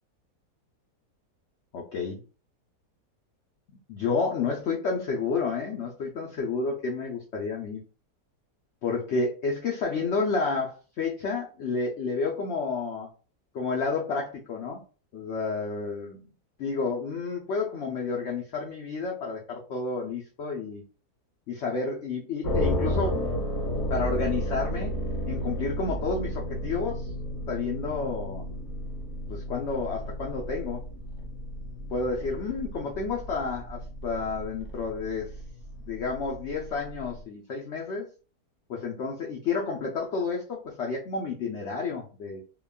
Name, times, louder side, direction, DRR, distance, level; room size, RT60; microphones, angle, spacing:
voice 1, 1.7-2.2 3.9-7.8 8.8-13.1 13.5-14.8 15.1-16.3 16.6-20.8 21.5-23.2 23.9-25.0 25.3-27.1 27.5-28.5 29.3-30.8 31.9-35.3 35.9-38.1 38.7-42.4, left 4 dB, 85° left, -1 dB, 0.6 m, -30 dB
sound 1, 22.4-37.2, equal, 35° left, 0.9 m, -33 dB
2.8 x 2.3 x 2.2 m, 0.36 s
omnidirectional pair, 1.8 m